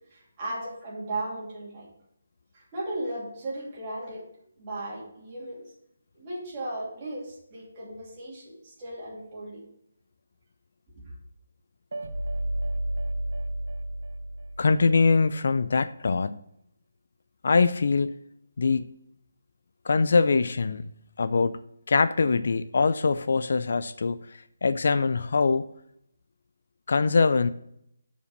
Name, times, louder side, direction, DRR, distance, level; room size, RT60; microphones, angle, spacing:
voice 1, 0.1-1.9 2.5-4.2 4.6-5.7 6.1-9.6 11.0-11.1, right 1 dB, 25° right, -5 dB, 2.7 m, -36 dB
sound 1, 11.9-15.1, right 1 dB, 60° right, 1.0 m, -31 dB
voice 2, 14.6-16.3 17.4-18.1 18.6-18.9 19.9-20.8 21.2-21.6 21.9-24.2 24.6-25.7 26.9-27.5, left 4 dB, 55° left, 14 dB, 0.4 m, -23 dB
6.9 x 5.1 x 6.4 m, 0.76 s
hypercardioid pair, 170°, 0 cm